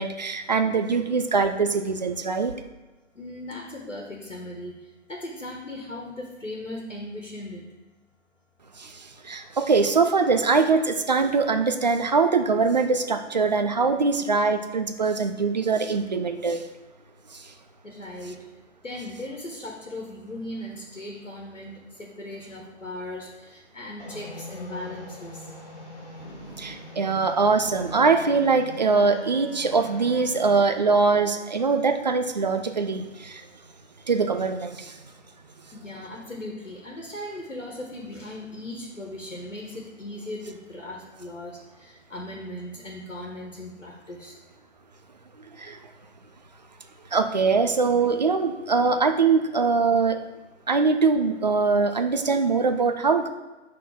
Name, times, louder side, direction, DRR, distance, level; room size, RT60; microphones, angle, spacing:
voice 1, 0.0-2.5 8.8-16.6 17.3-17.5 26.6-33.4 34.1-35.0 45.5-45.8 47.1-50.2 50.7-53.3, right 4 dB, 40° right, 7 dB, 0.4 m, -22 dB
voice 2, 3.1-4.8 5.1-7.6 17.8-18.4 18.8-25.5 35.7-44.4, left 1 dB, 85° left, -1 dB, 1.5 m, -38 dB
sound 1, 24.0-30.5, left 1 dB, 35° left, 2.0 m, -42 dB
5.4 x 3.8 x 5.9 m, 1.1 s
figure-of-eight pair, 140°, 36 cm